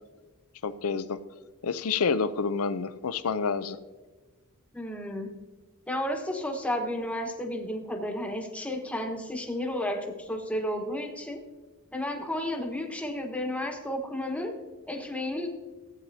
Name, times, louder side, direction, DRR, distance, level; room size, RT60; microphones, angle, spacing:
voice 1, 0.6-1.2 1.6-3.8, left 5 dB, 70° left, 13 dB, 0.6 m, -28 dB
voice 2, 4.7-5.3 5.9-11.4 11.9-14.5 14.9-15.5, left 1 dB, 5° left, 2 dB, 1.3 m, -32 dB
15.5 x 8.8 x 2.8 m, 1.3 s
head